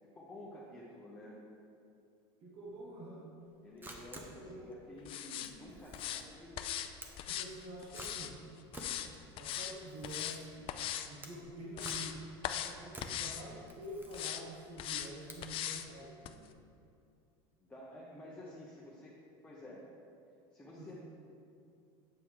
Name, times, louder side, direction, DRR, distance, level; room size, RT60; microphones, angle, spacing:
voice 1, 0.1-1.4 3.6-6.7 17.6-19.1 19.4-19.9 20.5-20.9, left 1 dB, 10° left, -7 dB, 1.0 m, -51 dB
voice 2, 2.4-3.3 4.4-4.7 7.2-8.4 9.4-10.7 11.1-12.2 12.6-16.5 20.8-20.9, right 1 dB, 50° right, -4 dB, 1.5 m, -47 dB
Camera, 3.4-15.9, right 1 dB, 15° right, 0.9 m, -53 dB
sound 1, 5.1-5.5 5.9-6.2 6.6-6.9 7.2-8.3 8.7-9.1 9.4-9.7 10.0-10.4 10.7-11.1 11.5-12.1 12.4-12.7 13.0-13.4 14.1-14.4 14.8-15.1 15.4-15.9 16.2-16.3, left 11 dB, 40° left, 0.4 m, -39 dB
7.6 x 5.5 x 4.7 m, 2.4 s
supercardioid pair, 130°, 13 cm